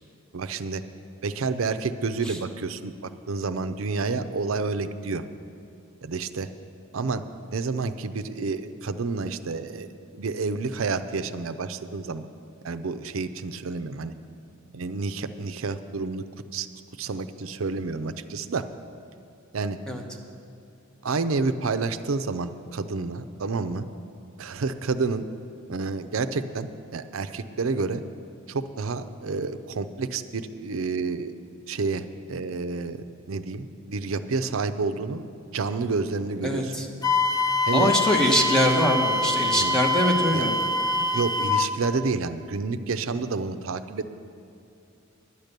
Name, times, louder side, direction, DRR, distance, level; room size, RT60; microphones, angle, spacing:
voice 1, 0.3-0.8 1.2-5.2 6.0-6.5 6.9-7.2 7.5-9.9 10.1-12.3 12.6-14.1 14.7-16.2 16.5-16.7 17.0-18.6 19.5-19.8 21.0-23.8 24.4-25.2 25.7-28.0 28.5-31.3 31.7-35.2 35.5-36.7 37.6-37.9 39.6-39.8 40.3-40.6 41.1-44.1, right 4 dB, 70° right, 10 dB, 0.6 m, -29 dB
voice 2, 36.4-36.9 37.7-40.5, equal, 5° left, 1 dB, 1.0 m, -23 dB
Wind instrument woodwind instrument, 37.0-41.7, left 3 dB, 20° left, 0.4 m, -24 dB
10.5 x 9.7 x 6.7 m, 2.6 s
head